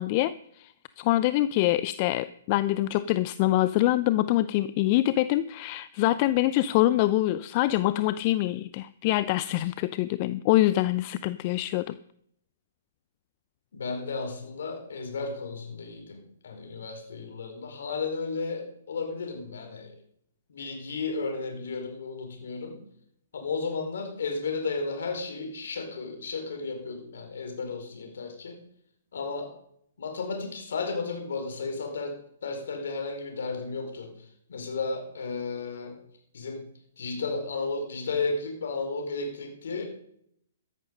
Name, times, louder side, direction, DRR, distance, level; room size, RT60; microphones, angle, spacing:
voice 1, 0.0-12.0, left 15 dB, 40° left, 15 dB, 0.5 m, -25 dB
voice 2, 13.7-19.9 20.5-22.8 23.3-28.6 29.1-29.5 30.0-34.1 34.5-36.0 36.3-36.6 37.0-39.8, left 4 dB, 65° left, 4 dB, 4.6 m, -33 dB
14.0 x 10.5 x 5.3 m, 0.69 s
figure-of-eight pair, 125°, 0 cm